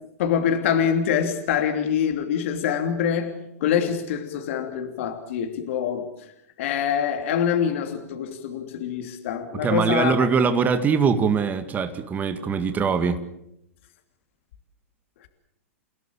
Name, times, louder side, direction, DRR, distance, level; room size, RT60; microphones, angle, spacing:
voice 1, 0.2-3.3 3.6-6.1 6.6-10.2, left 8 dB, 60° left, 6 dB, 3.0 m, -25 dB
voice 2, 9.6-13.2, right 6 dB, 20° right, 8 dB, 2.1 m, -22 dB
29.5 x 17.0 x 8.8 m, 0.82 s
hypercardioid pair, 105°, 8 cm